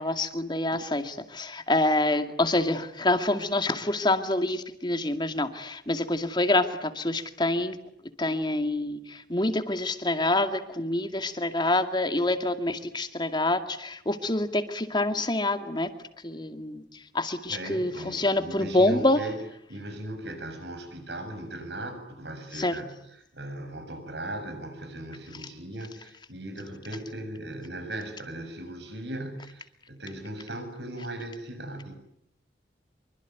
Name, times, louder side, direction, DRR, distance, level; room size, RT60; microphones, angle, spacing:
voice 1, 0.0-7.8 8.2-15.9 16.2-16.8 17.1-19.2 22.5-22.7, left 2 dB, 25° left, 8 dB, 2.2 m, -26 dB
voice 2, 17.5-19.4 19.7-32.0, right 1 dB, 75° right, 7 dB, 7.5 m, -38 dB
25.5 x 24.5 x 9.4 m, 0.73 s
head